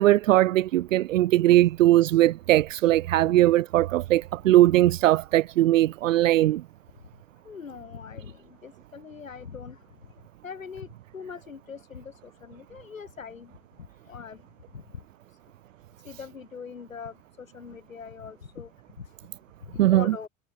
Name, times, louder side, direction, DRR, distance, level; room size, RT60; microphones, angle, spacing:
voice 1, 0.0-6.6 19.8-20.1, right 15 dB, 75° right, 0.6 m, -20 dB
voice 2, 7.4-9.8 10.4-10.9 11.1-13.5 14.1-14.4 14.7-15.0 16.0-18.7 19.0-19.1 19.7-20.3, left 6 dB, 85° left, 4.2 m, -41 dB
figure-of-eight pair, 75°, 39 cm